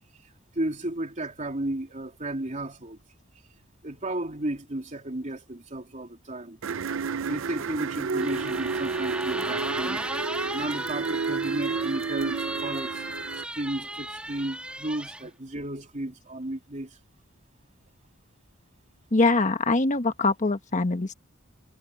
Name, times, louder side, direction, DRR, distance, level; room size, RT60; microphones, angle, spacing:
voice 1, 0.5-3.0 3.8-6.6 7.2-10.0 10.5-13.0 13.3-17.0, right 1 dB, 35° right, 3.1 m, -33 dB
sound 1, 6.6-13.4, right 5 dB, 65° right, 0.6 m, -31 dB
sound 2, 8.2-15.2, right 1 dB, 5° right, 2.5 m, -36 dB
voice 2, 19.1-21.1, left 3 dB, 35° left, 1.3 m, -23 dB
head